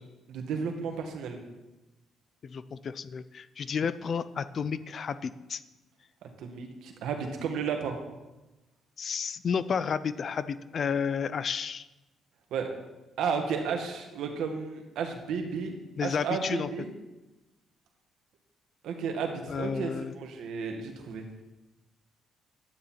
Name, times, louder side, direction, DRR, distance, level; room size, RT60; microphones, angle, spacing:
voice 1, 0.3-1.4 6.2-8.0 12.5-12.7 13.2-15.8 16.0-16.9 18.8-21.2, right 6 dB, 80° right, 4 dB, 1.8 m, -33 dB
voice 2, 2.4-5.6 9.0-11.9 16.0-16.7 19.5-20.1, left 6 dB, 50° left, 14 dB, 0.6 m, -31 dB
12.0 x 9.4 x 4.5 m, 1.0 s
cardioid pair, 90°, 0 cm